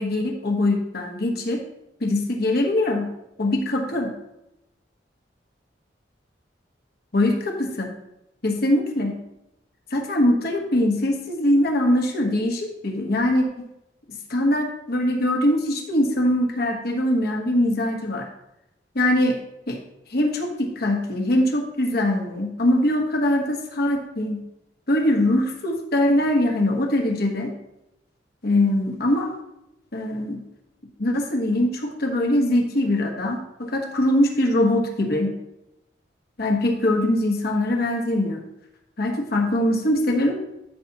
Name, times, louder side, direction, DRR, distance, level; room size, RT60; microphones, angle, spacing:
voice 1, 0.0-1.6 2.0-3.1 3.4-4.1 7.1-7.9 8.4-9.2 9.9-13.4 14.3-18.3 18.9-19.4 19.7-19.8 20.1-24.4 24.9-27.5 28.4-29.3 29.9-30.4 31.0-35.3 36.4-38.4 39.0-40.4, left 1 dB, 60° left, 2 dB, 1.4 m, -22 dB
12.5 x 5.8 x 2.9 m, 0.86 s
head